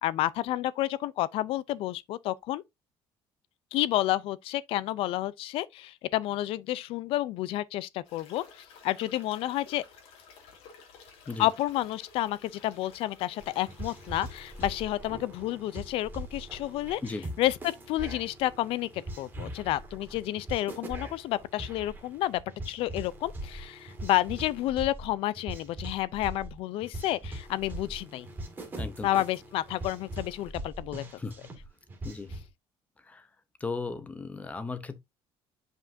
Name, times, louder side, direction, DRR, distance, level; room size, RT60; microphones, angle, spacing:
voice 1, 0.0-2.6 3.7-9.8 11.4-17.0 17.4-22.4 22.7-28.3 29.0-31.0, left 15 dB, 65° left, 0.5 m, -30 dB
sound 1, 8.0-14.8, left 5 dB, 90° left, 2.4 m, -53 dB
sound 2, 13.4-32.5, right 1 dB, 20° right, 1.9 m, -41 dB
voice 2, 28.8-29.1 31.2-31.4 32.0-32.3 33.0-33.3 33.6-35.0, left 4 dB, 15° left, 0.7 m, -36 dB
7.5 x 5.3 x 2.6 m
cardioid pair, 165°, 10 cm